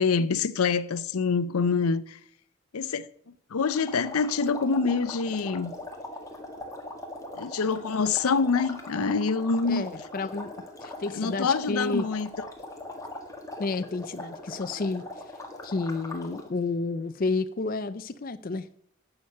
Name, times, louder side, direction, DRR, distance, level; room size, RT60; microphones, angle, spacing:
voice 1, 0.0-2.2 2.7-3.0 3.5-5.7 7.3-9.8 11.1-12.3, left 5 dB, 85° left, 0.6 m, -26 dB
sound 1, 3.7-16.5, left 2 dB, 15° left, 1.5 m, -41 dB
voice 2, 9.7-10.5 10.8-12.1 13.6-15.0 15.6-18.7, left 3 dB, 40° left, 0.5 m, -30 dB
11.0 x 7.0 x 6.6 m
head